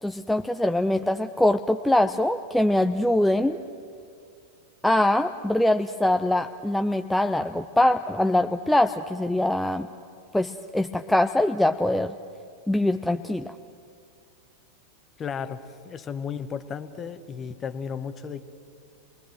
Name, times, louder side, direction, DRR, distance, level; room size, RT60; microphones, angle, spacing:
voice 1, 0.0-3.6 4.8-9.9 10.3-12.1 12.7-13.5, left 1 dB, 5° left, 6 dB, 0.6 m, -23 dB
voice 2, 15.2-18.4, left 7 dB, 25° left, 11 dB, 1.2 m, -34 dB
29.5 x 21.5 x 6.4 m, 2.2 s
figure-of-eight pair, 90°, 0 cm